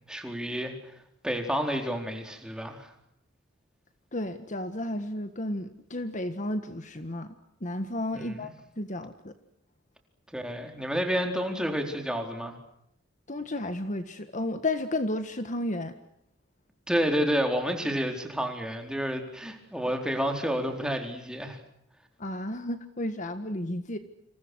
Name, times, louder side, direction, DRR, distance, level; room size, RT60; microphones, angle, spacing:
voice 1, 0.1-0.7 1.2-2.9 8.1-8.5 10.3-12.6 16.9-21.6, equal, 5° right, 3 dB, 4.3 m, -30 dB
voice 2, 4.1-8.5 8.8-9.3 13.3-16.0 22.2-24.0, left 1 dB, 40° left, 9 dB, 1.6 m, -32 dB
29.5 x 28.0 x 6.4 m, 0.77 s
head